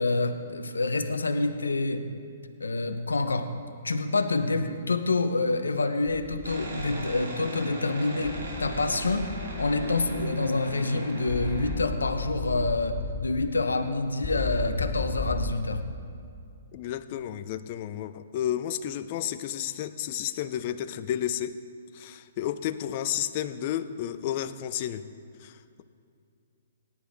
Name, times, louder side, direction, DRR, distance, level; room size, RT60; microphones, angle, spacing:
voice 1, 0.0-2.0 2.6-3.5 3.8-9.3 9.6-15.8, left 3 dB, 90° left, 7 dB, 0.9 m, -27 dB
sound 1, 6.1-7.2 8.2-10.3 11.3-13.3 14.2-15.5, left 3 dB, 25° left, 1.0 m, -35 dB
sound 2, 6.4-11.7, right 1 dB, 75° right, 3.5 m, -39 dB
voice 2, 16.7-21.6 21.9-25.1 25.4-25.8, left 11 dB, 45° left, 12 dB, 0.6 m, -32 dB
18.5 x 9.9 x 3.6 m, 2.4 s
hypercardioid pair, 130°, 0 cm